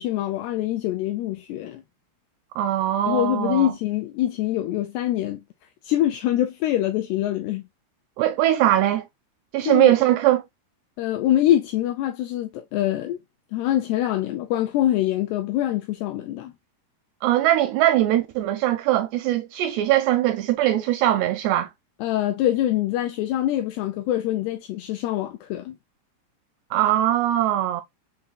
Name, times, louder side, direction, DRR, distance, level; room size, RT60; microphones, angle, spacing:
voice 1, 0.0-1.8 3.1-5.4 5.8-7.7 9.7-9.9 11.0-13.2 13.5-16.5 22.0-25.8, left 13 dB, 85° left, 2.3 m, -24 dB
voice 2, 2.6-3.7 8.2-9.0 9.5-10.4 17.2-21.7 26.7-27.8, right 13 dB, 85° right, 2.4 m, -21 dB
7.0 x 2.6 x 2.3 m
omnidirectional pair, 5.1 m